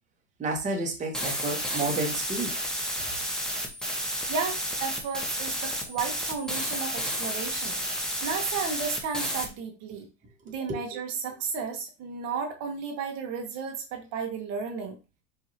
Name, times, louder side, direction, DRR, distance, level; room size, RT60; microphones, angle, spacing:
voice 1, 0.4-2.5 10.7-10.8, right 3 dB, 20° right, 1 dB, 1.1 m, -30 dB
sound 1, 1.1-9.5, equal, ahead, 0.9 m, -31 dB
voice 2, 4.3-10.1 10.4-15.0, right 5 dB, 50° right, 3 dB, 1.0 m, -33 dB
4.8 x 2.7 x 2.7 m, 0.29 s
supercardioid pair, 115°, 35 cm